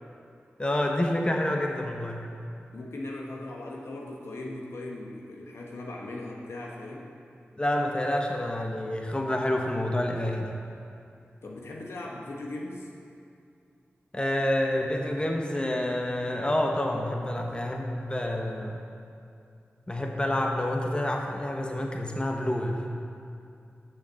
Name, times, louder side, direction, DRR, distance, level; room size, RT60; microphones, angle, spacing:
voice 1, 0.6-2.2 7.6-10.5 14.1-18.8 19.9-22.8, left 1 dB, 20° left, 2 dB, 1.0 m, -28 dB
voice 2, 2.7-7.1 11.4-12.9, left 2 dB, 80° left, -2 dB, 1.1 m, -38 dB
6.5 x 5.8 x 7.0 m, 2.5 s
cardioid pair, 40°, 4 cm